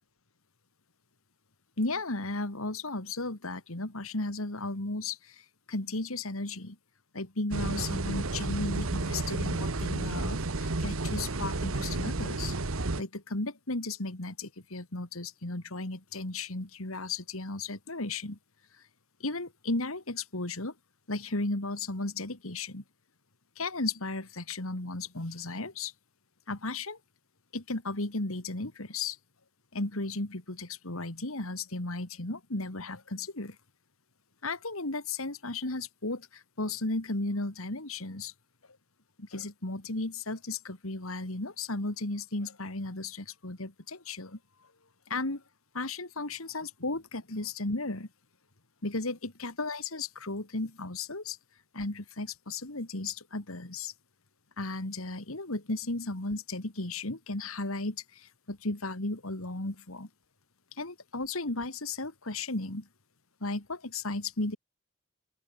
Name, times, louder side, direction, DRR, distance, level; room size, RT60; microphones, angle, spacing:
voice 1, 1.8-6.8 7.1-12.5 13.0-18.4 19.2-20.7 21.1-22.8 23.6-25.9 26.5-27.0 27.5-29.2 29.7-33.6 34.4-38.3 39.2-44.4 45.1-45.4 45.7-48.1 48.8-51.4 51.7-53.9 54.6-60.1 60.7-62.9 63.4-64.6, left 2 dB, 70° left, 2.7 m, -35 dB
sound 1, 7.5-13.0, right 2 dB, 70° right, 1.3 m, -31 dB
open air
head